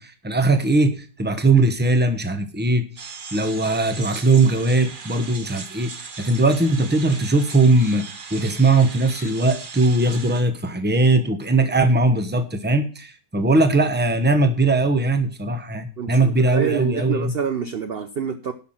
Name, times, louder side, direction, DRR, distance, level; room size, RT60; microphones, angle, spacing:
voice 1, 0.0-2.8 3.3-8.1 8.3-17.3, right 2 dB, 10° right, 9 dB, 0.9 m, -19 dB
sound 1, 3.0-10.4, right 4 dB, 35° right, 1.1 m, -38 dB
voice 2, 16.0-18.5, right 7 dB, 50° right, 9 dB, 0.7 m, -27 dB
11.5 x 6.1 x 7.4 m, 0.38 s
omnidirectional pair, 1.7 m